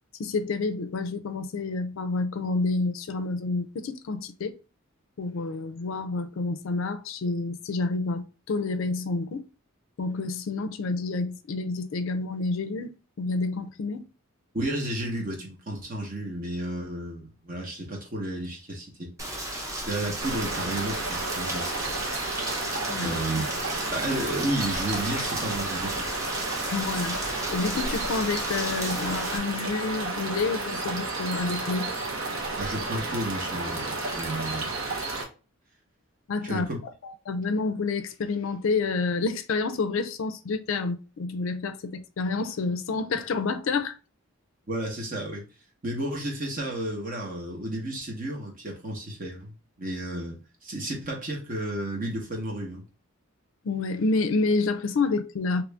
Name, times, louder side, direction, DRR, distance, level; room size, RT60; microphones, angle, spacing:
voice 1, 0.2-4.6 5.2-9.4 10.0-14.0 22.9-23.1 26.6-27.2 27.5-31.9 36.3-36.7 37.0-43.9 53.6-55.6, left 3 dB, 65° left, 0.4 m, -29 dB
voice 2, 14.5-19.1 19.9-22.0 23.0-23.4 23.9-26.1 32.6-34.8 36.4-36.8 44.7-45.5 45.8-52.8, right 1 dB, 40° right, 1.0 m, -32 dB
Rain, 19.2-29.4, right 1 dB, 15° right, 0.6 m, -34 dB
sound 1, 20.2-35.2, right 3 dB, 65° right, 0.9 m, -32 dB
3.0 x 2.6 x 3.3 m
head